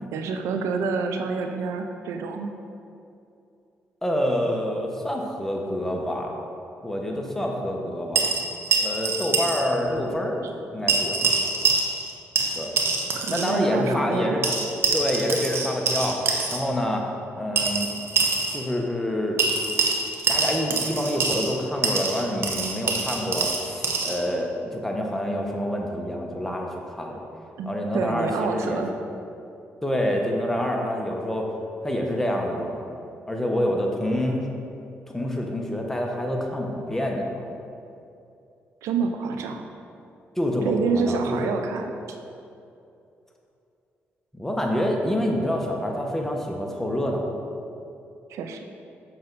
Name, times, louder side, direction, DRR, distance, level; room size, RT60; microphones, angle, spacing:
voice 1, 0.1-2.5 10.4-10.5 10.8-10.9 13.2-14.4 18.2-18.3 27.6-28.9 38.8-39.7 40.6-41.9 48.3-48.7, right 5 dB, 85° right, 5 dB, 0.5 m, -28 dB
voice 2, 4.0-6.3 6.8-8.3 8.8-10.4 10.7-11.2 12.5-12.8 13.3-14.4 14.9-17.1 17.3-17.9 18.5-19.4 20.3-27.2 27.7-28.8 29.8-31.5 31.8-32.8 33.3-34.5 35.1-37.5 40.4-41.5 44.3-47.3, equal, 10° left, 0 dB, 1.2 m, -27 dB
sound 1, 8.1-9.6 9.9-10.0 10.9-12.1 12.4-13.5 14.4-16.6 17.6-18.6 19.4-21.5 21.8-24.2, right 4 dB, 55° right, 1.1 m, -24 dB
6.9 x 6.5 x 4.1 m, 2.7 s
cardioid pair, 70°, 5 cm